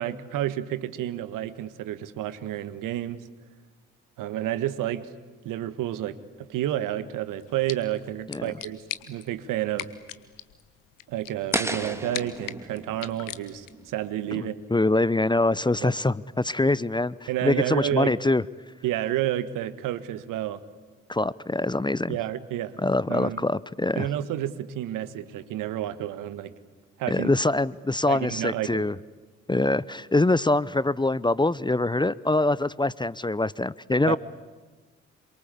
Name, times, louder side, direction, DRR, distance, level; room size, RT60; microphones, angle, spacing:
voice 1, 0.0-3.2 4.2-5.1 5.5-9.9 11.1-14.6 15.8-15.9 17.3-18.1 18.8-20.6 22.1-22.8 23.1-23.4 24.0-26.5 27.0-27.3 28.1-28.9 34.1-34.2, right 12 dB, 70° right, 14 dB, 1.6 m, -30 dB
sound 1, 7.4-13.9, left 15 dB, 75° left, 1.4 m, -41 dB
sound 2, 11.5-14.6, right 1 dB, 10° right, 2.9 m, -34 dB
voice 2, 14.3-18.4 21.1-22.2 22.8-24.1 27.1-28.9 29.5-34.2, left 2 dB, 15° left, 20 dB, 0.8 m, -24 dB
27.5 x 24.0 x 8.5 m, 1.3 s
hypercardioid pair, 45°, 33 cm